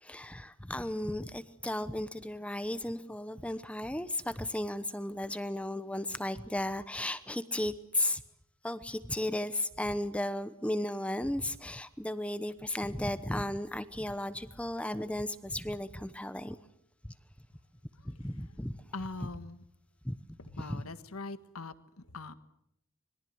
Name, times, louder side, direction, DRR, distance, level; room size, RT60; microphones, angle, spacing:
voice 1, 0.0-8.2 8.6-16.6 18.0-18.8 19.2-19.3 20.0-20.1 20.5-20.8, left 1 dB, 5° left, 0.9 m, -35 dB
voice 2, 18.9-19.6 20.6-21.7 22.1-22.3, left 3 dB, 80° left, 1.7 m, -41 dB
25.5 x 21.5 x 7.9 m
head